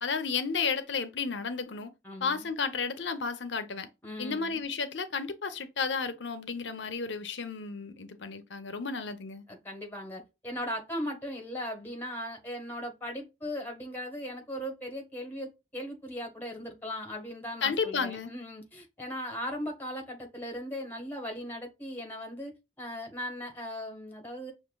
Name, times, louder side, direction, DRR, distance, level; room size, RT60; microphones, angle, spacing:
voice 1, 0.0-1.9 2.2-3.9 4.2-9.4 17.6-18.3, left 5 dB, 90° left, 0.8 m, -32 dB
voice 2, 2.0-2.5 4.0-4.6 9.5-22.5 22.8-24.5, equal, 10° left, 1.2 m, -38 dB
6.3 x 2.6 x 2.3 m
head